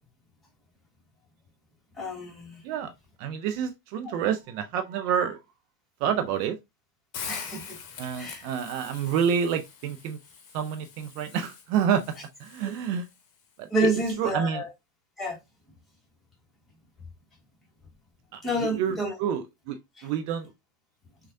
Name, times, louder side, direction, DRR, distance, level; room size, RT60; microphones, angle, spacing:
voice 1, 2.0-2.6 7.2-7.8 8.2-8.5 13.7-14.7 15.2-15.4 18.4-19.1, right 1 dB, 10° left, 1.6 m, -29 dB
voice 2, 3.2-5.4 6.0-6.6 8.0-10.2 10.5-12.0 12.4-13.0 13.6-13.9 14.2-14.6 18.3-20.5, right 8 dB, 45° right, 0.5 m, -28 dB
Hiss, 7.1-13.2, left 6 dB, 40° left, 1.0 m, -43 dB
6.1 x 2.4 x 2.6 m
figure-of-eight pair, 90°, 0 cm